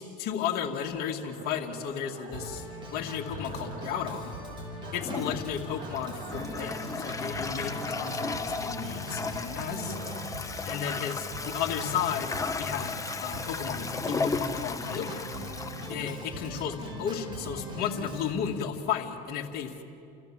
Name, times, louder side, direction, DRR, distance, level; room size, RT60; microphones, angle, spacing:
voice 1, 0.0-2.7 2.9-4.3 4.9-10.0 10.7-15.3 15.9-19.8, left 8 dB, 55° left, 0 dB, 2.4 m, -34 dB
sound 1, 0.9-2.6 3.3-4.2 4.8-5.2 5.7-6.7 7.4-8.4 9.4-10.2, right 5 dB, 55° right, 2.4 m, -46 dB
Organ, 2.3-18.3, equal, 25° right, 5.8 m, -40 dB
Toilet flush, 5.0-16.8, left 4 dB, 15° left, 1.0 m, -35 dB
30.0 x 15.5 x 7.5 m, 2.6 s
supercardioid pair, 115°, 19 cm